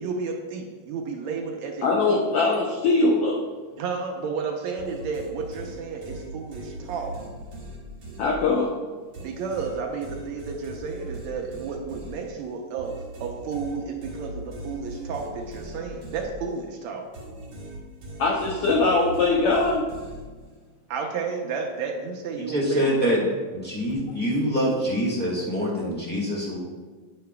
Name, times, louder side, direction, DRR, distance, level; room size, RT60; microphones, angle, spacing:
voice 1, 0.0-2.2 3.8-7.2 9.2-17.1 20.9-22.9, right 5 dB, 75° right, 2 dB, 1.9 m, -32 dB
voice 2, 1.8-3.4 8.2-8.7 18.2-19.9, left 3 dB, 80° left, 0 dB, 1.3 m, -21 dB
sound 1, 4.8-8.8 9.1-16.8 17.1-20.6, right 1 dB, 50° right, 3.6 m, -40 dB
voice 3, 22.4-23.3 23.5-26.6, equal, 5° left, -5 dB, 0.7 m, -25 dB
9.6 x 8.6 x 2.3 m, 1.4 s
omnidirectional pair, 3.4 m